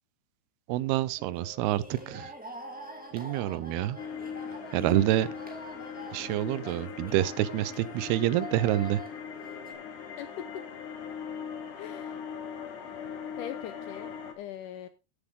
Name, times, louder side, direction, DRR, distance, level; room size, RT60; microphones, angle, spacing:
voice 1, 0.7-2.3 3.1-4.0 4.7-5.3 6.1-9.0, right 14 dB, 90° right, 2.7 m, -27 dB
sound 1, 1.2-9.7, right 1 dB, 5° right, 0.9 m, -45 dB
sound 2, 4.0-14.3, left 7 dB, 60° left, 2.8 m, -40 dB
voice 2, 11.8-12.2 13.3-14.9, left 11 dB, 75° left, 1.9 m, -41 dB
14.5 x 7.2 x 3.7 m
omnidirectional pair, 4.4 m